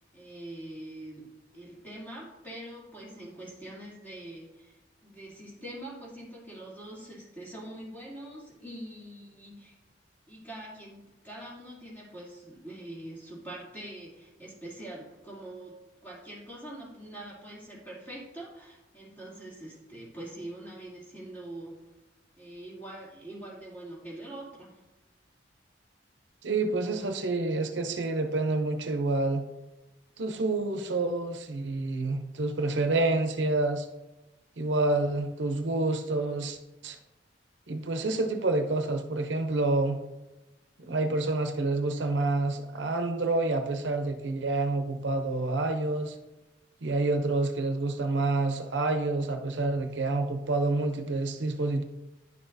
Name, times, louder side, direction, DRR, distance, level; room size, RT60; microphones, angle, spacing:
voice 1, 0.1-1.3 1.5-4.8 5.0-9.8 10.3-15.7 16.0-21.8 22.4-24.8, right 1 dB, 10° left, -6 dB, 2.7 m, -44 dB
voice 2, 26.4-29.4 30.2-33.9 34.6-36.6 36.8-37.0 37.7-40.0 40.8-46.1 46.8-51.8, right 2 dB, 80° right, 6 dB, 0.7 m, -28 dB
10.5 x 6.1 x 2.7 m, 1.0 s
head